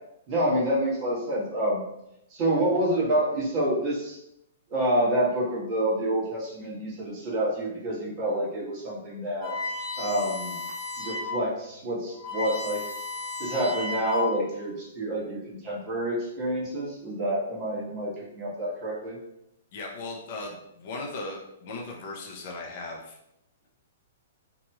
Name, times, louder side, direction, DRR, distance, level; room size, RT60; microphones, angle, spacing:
voice 1, 0.3-1.9 2.3-4.2 4.7-9.5 10.0-10.6 11.0-12.8 13.4-19.2, right 1 dB, 40° right, -6 dB, 1.3 m, -28 dB
sound 1, 9.4-11.4 11.8-11.9 12.1-14.5, left 3 dB, 5° left, 1.4 m, -33 dB
voice 2, 19.7-23.2, left 2 dB, 50° left, 0 dB, 0.6 m, -37 dB
2.9 x 2.7 x 2.3 m, 0.81 s
hypercardioid pair, 120°, 0 cm